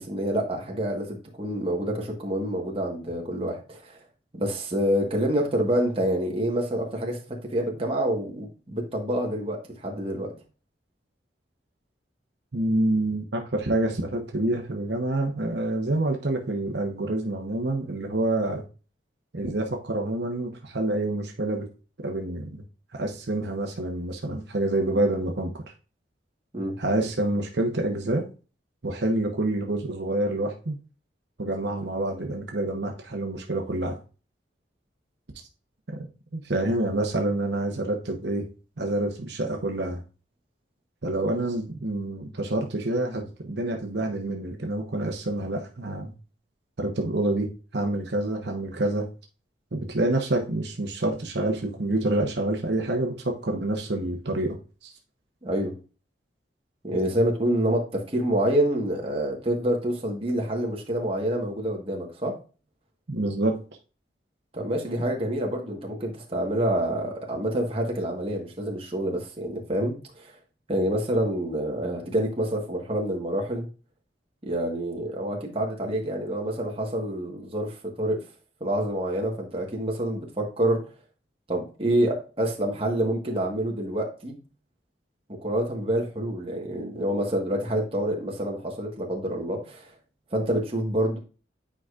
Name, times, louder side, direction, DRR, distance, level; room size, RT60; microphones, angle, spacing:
voice 1, 0.0-4.0 4.3-7.2 7.5-10.3 26.5-26.7 55.4-55.7 56.8-62.3 64.5-70.3 70.7-73.7 74.4-78.2 78.6-80.8 81.5-84.4 85.3-89.9 90.3-91.2, right 1 dB, 30° right, 0 dB, 1.4 m, -27 dB
voice 2, 12.5-18.7 19.3-21.7 22.0-22.6 22.9-25.6 26.8-28.3 28.8-30.8 31.4-34.0 36.3-38.5 38.8-40.0 41.0-46.1 46.8-49.1 49.7-54.6 54.8-54.9 63.1-63.6, right 2 dB, 70° right, 3 dB, 0.9 m, -27 dB
8.9 x 4.9 x 2.4 m, 0.35 s
head